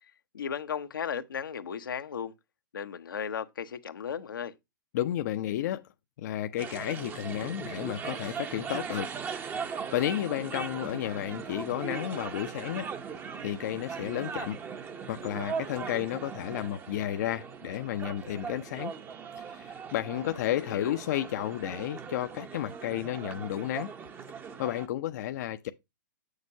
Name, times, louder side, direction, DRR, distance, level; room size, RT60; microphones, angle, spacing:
voice 1, 0.3-2.3 2.7-4.5 20.6-21.0, left 7 dB, 85° left, 0.9 m, -35 dB
voice 2, 4.9-5.8 6.2-9.1 9.7-12.9 13.4-14.6 15.1-18.9 19.4-23.9 24.6-25.7, left 12 dB, 55° left, 0.6 m, -32 dB
sound 1, 6.6-24.9, right 6 dB, 20° right, 0.7 m, -39 dB
7.4 x 6.5 x 2.7 m
hypercardioid pair, 130°, 11 cm